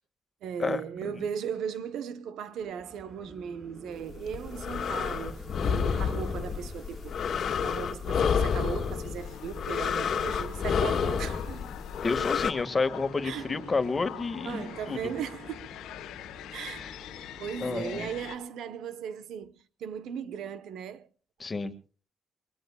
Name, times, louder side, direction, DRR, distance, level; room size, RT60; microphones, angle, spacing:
voice 1, 0.4-7.1 7.6-11.7 13.2-13.5 14.4-15.7 16.5-16.8 17.4-21.1, right 8 dB, 80° right, 1.0 m, -37 dB
sound 1, 2.6-17.6, equal, 5° right, 7.1 m, -50 dB
sound 2, 4.2-12.5, left 7 dB, 60° left, 1.6 m, -29 dB
sound 3, 9.2-18.4, left 11 dB, 90° left, 1.1 m, -44 dB
voice 2, 12.0-15.1 16.8-16.9 17.6-18.1 21.4-21.7, left 4 dB, 30° left, 1.7 m, -30 dB
23.0 x 22.0 x 2.3 m
cardioid pair, 90°, 0 cm